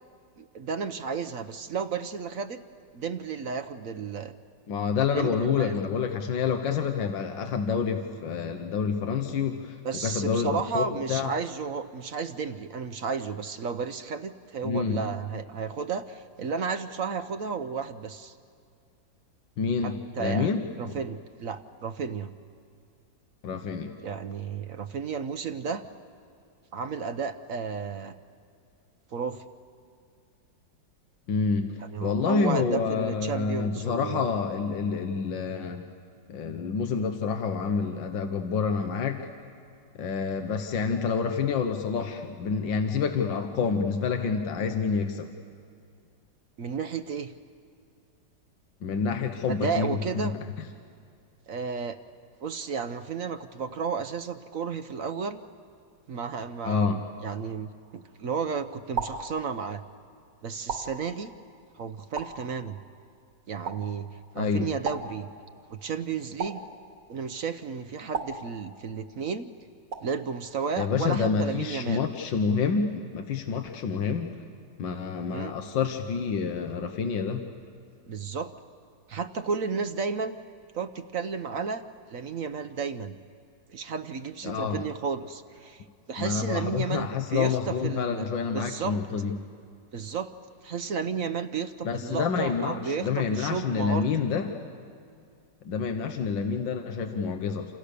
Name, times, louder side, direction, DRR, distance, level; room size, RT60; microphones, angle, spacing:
voice 1, 0.4-2.6 2.9-4.3 5.1-5.7 9.8-18.3 19.8-22.3 24.0-25.8 26.7-28.1 29.1-29.4 31.9-34.3 46.6-47.3 49.5-50.3 51.5-52.0 52.4-55.4 56.1-59.8 60.4-61.3 61.8-62.8 63.5-64.1 64.3-65.3 65.7-66.6 67.1-69.5 70.0-72.1 75.3-75.5 78.1-78.5 79.1-80.4 80.7-81.8 82.1-83.2 83.7-89.0 89.9-90.3 90.6-94.1, right 5 dB, 55° right, 10 dB, 1.1 m, -33 dB
voice 2, 4.7-9.8 10.0-11.3 14.6-15.0 19.6-20.7 23.4-23.9 31.3-31.7 32.0-35.8 36.3-39.2 40.0-45.3 48.8-50.3 56.6-57.0 64.4-64.7 70.8-74.3 74.8-77.4 84.4-84.8 86.2-89.3 91.8-94.5 95.7-97.8, left 5 dB, 85° left, 5 dB, 1.9 m, -28 dB
sound 1, 57.8-58.3 59.0-59.9 60.7-61.6 62.2-63.0 63.7-64.3 64.9-65.8 66.4-67.3 68.1-69.1 69.9-70.5, right 5 dB, 75° right, 2.8 m, -37 dB
28.0 x 28.0 x 6.8 m, 2.3 s
omnidirectional pair, 2.0 m